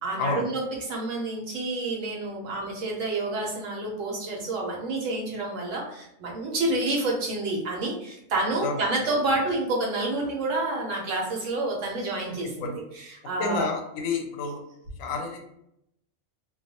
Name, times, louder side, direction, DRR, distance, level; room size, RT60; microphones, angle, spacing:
voice 1, 0.0-13.7, right 2 dB, 70° right, -1 dB, 1.0 m, -29 dB
voice 2, 13.4-14.6 15.0-15.4, left 4 dB, 90° left, 2 dB, 1.0 m, -29 dB
2.3 x 2.2 x 2.7 m, 0.78 s
omnidirectional pair, 1.4 m